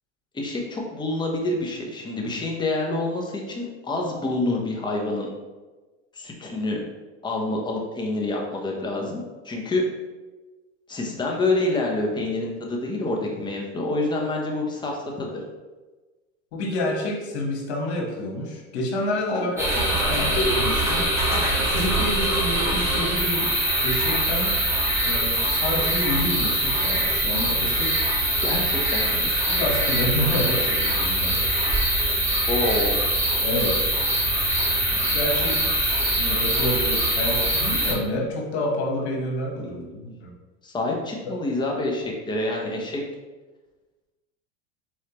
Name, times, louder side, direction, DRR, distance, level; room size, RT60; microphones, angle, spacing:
voice 1, 0.3-5.3 6.1-6.8 7.2-9.8 10.9-15.3 19.3-20.4 28.4-29.3 32.5-33.0 39.9-40.0 40.6-43.0, left 2 dB, 15° left, -1 dB, 0.8 m, -27 dB
voice 2, 16.5-19.6 19.9-21.1 21.6-23.5 23.8-24.5 25.0-28.0 29.5-31.4 32.1-32.2 33.4-33.9 35.1-40.3, left 1 dB, 80° left, -2 dB, 1.4 m, -28 dB
sound 1, 19.6-37.9, right 1 dB, 10° right, 1.3 m, -23 dB
4.4 x 3.2 x 2.9 m, 1.2 s
supercardioid pair, 110°, 33 cm